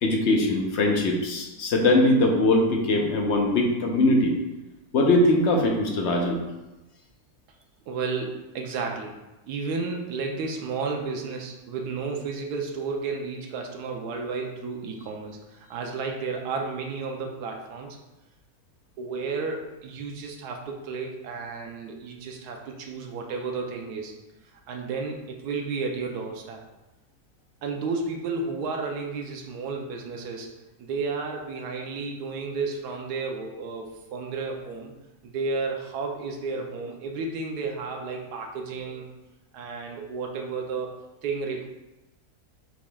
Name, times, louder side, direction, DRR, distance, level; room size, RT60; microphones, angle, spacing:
voice 1, 0.0-4.4 4.9-6.4, left 2 dB, 60° left, 1 dB, 0.8 m, -21 dB
voice 2, 7.9-9.1 9.5-18.0 19.0-24.1 24.7-26.6 27.6-30.5 30.8-34.9 35.2-39.1 39.5-41.7, right 4 dB, 90° right, 1 dB, 1.2 m, -32 dB
6.0 x 3.5 x 2.2 m, 1.0 s
omnidirectional pair, 1.7 m